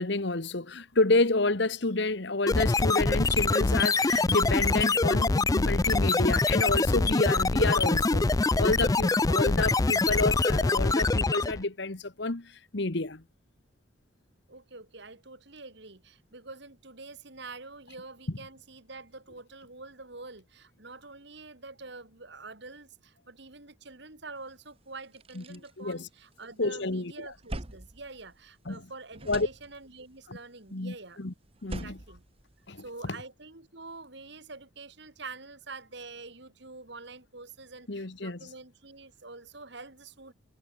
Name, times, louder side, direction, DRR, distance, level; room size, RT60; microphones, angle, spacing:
voice 1, 0.0-8.3 8.5-13.2 25.4-26.1 26.6-27.1 28.7-28.8 29.3-29.5 30.7-31.3 31.6-32.0 32.7-33.2 37.9-38.4, left 2 dB, 55° left, 1.3 m, -29 dB
sound 1, 2.5-11.6, left 3 dB, 15° left, 0.3 m, -24 dB
voice 2, 14.5-31.2 31.6-32.2 32.8-40.3, right 3 dB, 55° right, 2.6 m, -46 dB
sound 2, 24.5-24.6 24.9-26.6 27.0-28.8 29.1-30.2 31.4-33.1, right 1 dB, 30° right, 1.3 m, -43 dB
head